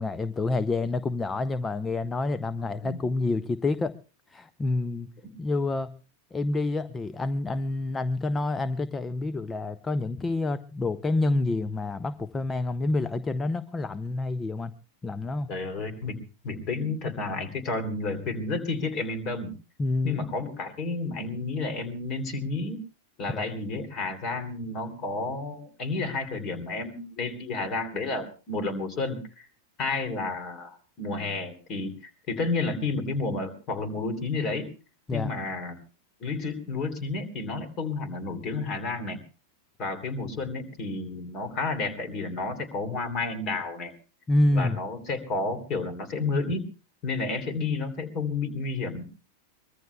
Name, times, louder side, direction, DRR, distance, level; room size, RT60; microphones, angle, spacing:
voice 1, 0.0-3.9 4.3-5.1 5.4-5.9 6.3-14.7 15.0-15.5 19.8-20.2 23.3-23.5 35.1-35.3 44.3-44.8, left 2 dB, 15° left, 15 dB, 0.7 m, -28 dB
voice 2, 15.5-19.5 20.0-22.8 23.2-29.5 29.8-34.7 35.1-35.8 36.2-39.2 39.8-43.9 44.5-46.6 47.0-49.0, left 3 dB, 35° left, 10 dB, 3.1 m, -31 dB
24.0 x 21.0 x 2.3 m, 0.36 s
figure-of-eight pair, 90°, 0 cm